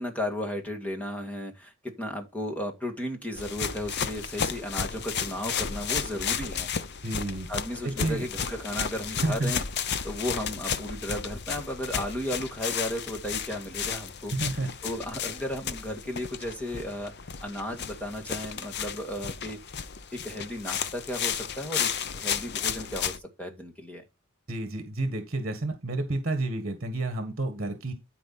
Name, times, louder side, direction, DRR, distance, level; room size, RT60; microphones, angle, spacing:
voice 1, 0.0-6.7 7.5-9.6 10.0-14.3 14.8-17.1 17.4-19.6 20.1-24.0, left 1 dB, 5° left, 2.1 m, -34 dB
sound 1, 3.4-23.2, left 7 dB, 55° left, 0.7 m, -33 dB
voice 2, 7.0-7.5 7.8-8.3 9.2-9.5 14.3-14.7 24.5-27.9, right 2 dB, 45° right, 1.8 m, -30 dB
12.5 x 4.8 x 4.3 m
head